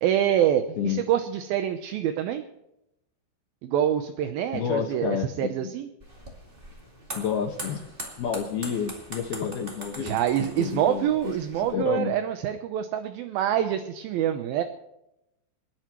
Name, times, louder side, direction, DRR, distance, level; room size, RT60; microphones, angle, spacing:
voice 1, 0.0-2.4 3.6-5.9 10.0-14.6, right 10 dB, 75° right, 7 dB, 2.4 m, -26 dB
voice 2, 4.5-5.7 7.1-7.8 8.2-12.1, left 8 dB, 70° left, 1 dB, 3.3 m, -30 dB
sound 1, 6.0-11.7, right 1 dB, 20° right, 1.5 m, -42 dB
28.0 x 10.5 x 3.1 m, 0.86 s
omnidirectional pair, 4.9 m